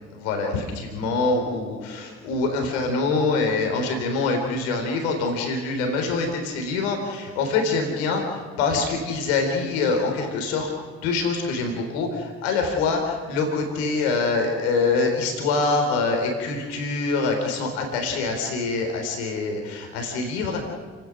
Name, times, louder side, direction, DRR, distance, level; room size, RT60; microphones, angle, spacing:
voice 1, 0.2-10.7 11.0-20.7, left 3 dB, 80° left, 3 dB, 4.1 m, -25 dB
29.5 x 18.5 x 6.3 m, 1.5 s
hypercardioid pair, 40°, 32 cm